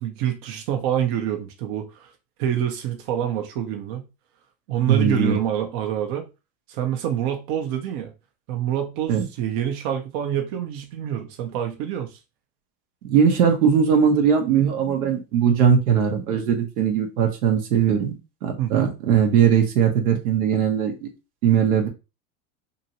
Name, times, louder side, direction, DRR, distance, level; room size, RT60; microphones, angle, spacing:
voice 1, 0.0-2.1 2.4-4.0 4.7-6.3 6.7-8.1 8.5-12.2 18.6-19.0, right 10 dB, 55° right, 0.8 m, -26 dB
voice 2, 4.9-5.4 9.1-9.2 13.0-18.1 18.4-21.1 21.4-21.9, right 7 dB, 80° right, 0.9 m, -20 dB
2.9 x 2.7 x 2.8 m
hypercardioid pair, 95°, 42 cm